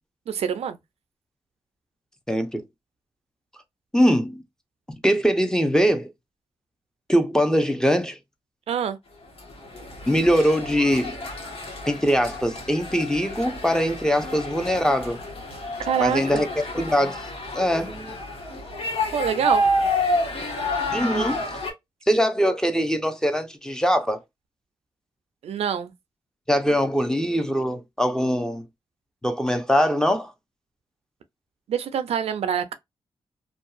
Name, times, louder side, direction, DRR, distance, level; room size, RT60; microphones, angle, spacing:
voice 1, 0.3-0.8 8.7-9.0 15.8-16.5 19.1-19.7 25.4-25.9 31.7-32.7, right 8 dB, 80° right, 0.4 m, -25 dB
voice 2, 2.3-2.6 3.9-4.4 5.0-6.1 7.1-8.2 10.1-11.2 11.9-15.2 16.0-16.5 16.7-17.3 17.5-18.2 20.9-21.4 22.1-24.2 26.5-28.6 29.2-30.3, equal, 5° left, 0.7 m, -22 dB
sound 1, 9.4-21.7, left 1 dB, 65° left, 1.2 m, -29 dB
2.6 x 2.3 x 2.3 m
cardioid pair, 60°, 10 cm